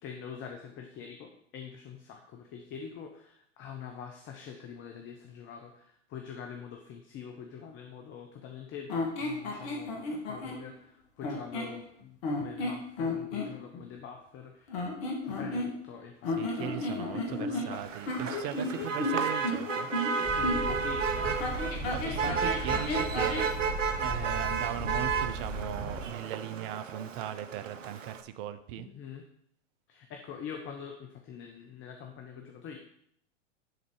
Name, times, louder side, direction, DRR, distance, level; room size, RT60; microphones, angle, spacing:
voice 1, 0.0-8.9 9.2-14.8 15.2-16.6 17.1-17.8 18.5-19.2 20.1-22.5 28.8-29.2 29.9-32.8, left 7 dB, 30° left, 4 dB, 0.9 m, -45 dB
sound 1, 8.9-10.6 11.2-11.8 12.2-13.5 14.7-15.9 16.2-20.8 21.4-23.5, left 2 dB, 50° left, 2.0 m, -33 dB
voice 2, 16.4-19.9 21.9-23.5 24.0-28.9, right 11 dB, 45° right, 13 dB, 0.7 m, -38 dB
Motor vehicle (road), 17.7-28.2, right 5 dB, 80° right, 0.8 m, -33 dB
sound 2, 20.2-26.1, right 1 dB, 5° left, 2.4 m, -37 dB
10.5 x 4.0 x 4.8 m, 0.70 s
figure-of-eight pair, 95°, 37 cm